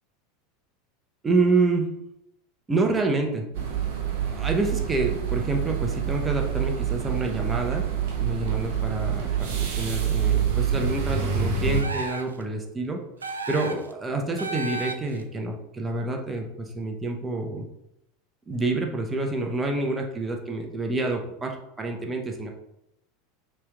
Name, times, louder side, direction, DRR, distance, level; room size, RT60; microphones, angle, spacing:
voice 1, 1.2-1.9 2.7-3.5 4.2-7.8 8.2-17.7 18.5-22.5, right 2 dB, 20° right, 2 dB, 0.7 m, -28 dB
sound 1, 3.5-11.8, right 8 dB, 60° right, 0.8 m, -26 dB
sound 2, 11.7-12.4 13.2-13.9 14.4-15.2, right 3 dB, 85° right, 0.3 m, -33 dB
6.0 x 3.1 x 2.4 m, 0.83 s
figure-of-eight pair, 80°, 0 cm